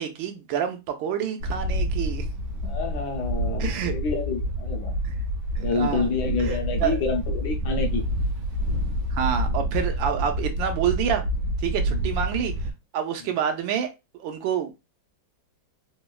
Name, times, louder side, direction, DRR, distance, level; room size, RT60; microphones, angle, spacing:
voice 1, 0.0-2.3 2.6-2.7 3.6-3.9 5.0-5.1 5.6-6.1 6.4-7.0 9.1-11.2 11.6-12.5 12.9-14.7, right 8 dB, 90° right, 1.4 m, -28 dB
Wind, 1.4-12.7, equal, 70° right, 1.2 m, -28 dB
voice 2, 2.6-4.9 5.6-8.0 11.9-12.0, left 4 dB, 70° left, 1.1 m, -28 dB
3.6 x 2.1 x 2.3 m
omnidirectional pair, 2.0 m